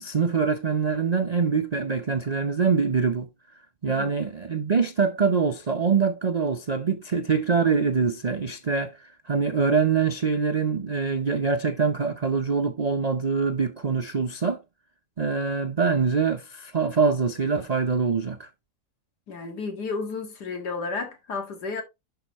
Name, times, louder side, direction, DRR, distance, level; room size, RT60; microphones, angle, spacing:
voice 1, 0.0-3.3 3.8-14.6 15.2-18.5, right 5 dB, 90° right, 0.3 m, -24 dB
voice 2, 19.3-21.8, left 4 dB, 75° left, 2.4 m, -32 dB
11.5 x 4.9 x 3.0 m
omnidirectional pair, 1.8 m